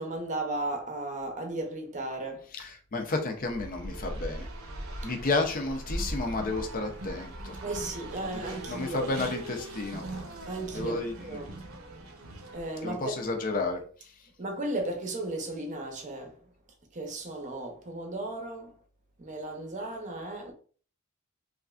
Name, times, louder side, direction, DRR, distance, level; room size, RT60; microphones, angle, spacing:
voice 1, 0.0-2.5 7.6-9.1 10.5-11.5 12.5-13.2 14.4-16.4 16.9-18.8 19.2-20.5, right 2 dB, 35° right, 0.7 m, -35 dB
voice 2, 2.5-4.5 5.0-7.5 8.2-8.4 8.7-10.0 10.7-11.1 12.8-13.8, left 3 dB, 40° left, 0.6 m, -31 dB
Race car auto racing, 3.4-13.1, right 1 dB, 80° right, 0.7 m, -40 dB
3.2 x 2.5 x 2.3 m
head